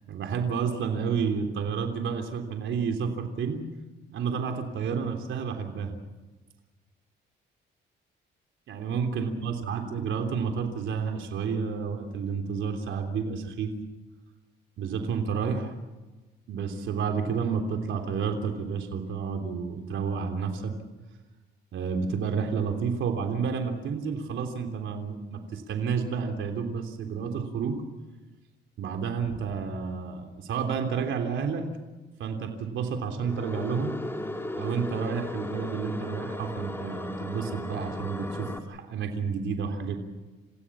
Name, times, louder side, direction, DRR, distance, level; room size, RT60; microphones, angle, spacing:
voice 1, 0.1-3.6 4.1-5.9 8.7-13.7 14.8-15.7 16.5-20.7 21.7-27.8 28.8-31.6 32.2-33.9 34.6-40.0, right 6 dB, 75° right, 4 dB, 3.4 m, -30 dB
sound 1, 33.2-38.6, left 1 dB, 10° left, 2.7 m, -36 dB
29.5 x 16.5 x 7.4 m, 1.2 s
cardioid pair, 90°, 20 cm